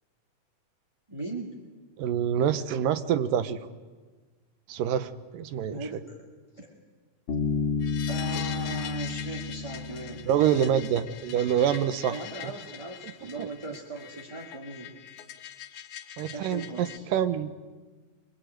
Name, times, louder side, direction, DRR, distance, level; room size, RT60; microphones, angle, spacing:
voice 1, 1.1-1.5 5.7-6.2 6.6-6.8 8.1-10.3 12.1-14.9 16.3-17.1, right 2 dB, 10° right, -1 dB, 1.7 m, -38 dB
voice 2, 2.0-3.6 4.7-5.8 10.3-12.2 13.4-13.5 16.2-17.7, right 9 dB, 85° right, 12 dB, 2.8 m, -26 dB
Bass guitar, 7.3-11.0, left 4 dB, 40° left, 2.7 m, -31 dB
sound 1, 7.8-17.0, left 10 dB, 65° left, 2.7 m, -43 dB
24.0 x 23.0 x 9.3 m, 1.4 s
omnidirectional pair, 3.8 m